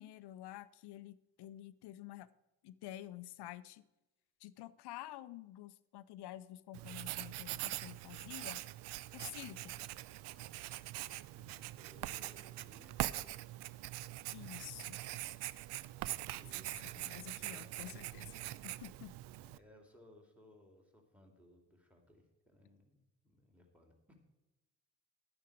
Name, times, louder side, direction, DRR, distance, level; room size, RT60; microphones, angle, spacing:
voice 1, 0.0-2.3 2.6-3.8 4.4-8.6 9.1-9.7 14.3-15.0 16.7-19.1, left 14 dB, 55° left, 15 dB, 0.7 m, -50 dB
Writing, 6.7-19.6, right 16 dB, 55° right, 0.6 m, -43 dB
voice 2, 11.3-13.4 15.9-18.1 19.3-23.0 23.2-24.2, equal, 5° right, 2 dB, 2.8 m, -63 dB
11.5 x 9.2 x 4.9 m, 1.0 s
hypercardioid pair, 45°, 49 cm